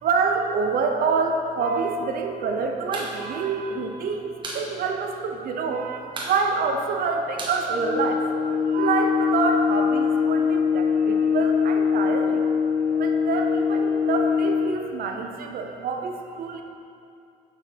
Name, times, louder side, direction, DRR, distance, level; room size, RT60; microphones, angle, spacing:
voice 1, 0.0-8.2 8.7-12.5 13.0-16.6, right 4 dB, 60° right, 4 dB, 0.7 m, -27 dB
sound 1, 2.9-3.1 3.4-3.5 3.8-4.7 5.0-5.1 5.4-5.8 6.1-8.5, right 2 dB, 30° right, 1.4 m, -35 dB
sound 2, 7.7-14.8, left 6 dB, 55° left, 1.4 m, -22 dB
6.7 x 6.0 x 4.4 m, 2.5 s
cardioid pair, 110°, 17 cm